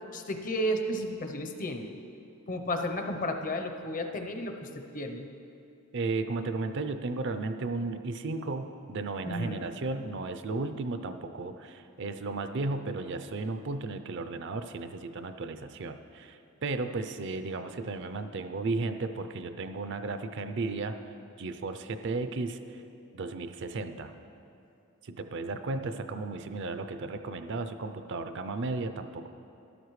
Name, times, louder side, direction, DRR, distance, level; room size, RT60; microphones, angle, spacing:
voice 1, 0.1-2.0 2.5-5.3 9.3-9.6, equal, 40° left, 5 dB, 0.7 m, -33 dB
voice 2, 5.9-21.0 21.4-22.8 23.1-24.1 25.0-29.3, right 3 dB, 55° right, 9 dB, 0.5 m, -34 dB
13.0 x 12.0 x 3.2 m, 2.7 s
head